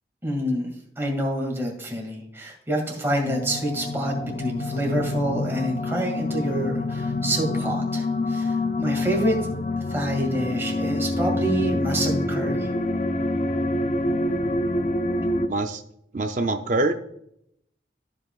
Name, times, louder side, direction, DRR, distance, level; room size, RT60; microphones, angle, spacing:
voice 1, 0.2-9.4 9.9-12.7, right 1 dB, 15° right, -1 dB, 2.2 m, -27 dB
sound 1, 3.2-15.5, left 2 dB, 40° left, 0.4 m, -26 dB
voice 2, 15.5-15.8 16.1-16.9, right 2 dB, 45° right, 6 dB, 0.5 m, -24 dB
14.5 x 5.4 x 2.4 m, 0.73 s
head